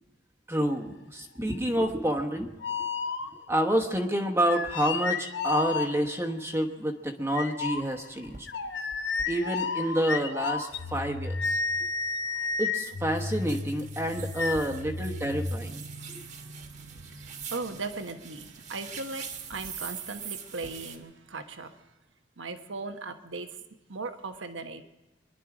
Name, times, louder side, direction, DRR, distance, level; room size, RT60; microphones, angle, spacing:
voice 1, 0.5-2.5 3.5-8.5 9.3-11.6 12.6-15.8, right 1 dB, 15° right, 1.1 m, -28 dB
sound 1, 2.6-3.6 4.4-6.3 7.3-15.6, left 4 dB, 65° left, 0.9 m, -32 dB
sound 2, 7.7-7.8 8.2-8.4 8.9-9.3 9.8-9.9 10.4-10.5 10.7-21.0, right 7 dB, 40° right, 1.4 m, -44 dB
voice 2, 14.5-21.9 22.4-23.5 23.9-24.8, right 3 dB, 85° right, 1.1 m, -39 dB
25.0 x 11.0 x 4.9 m
head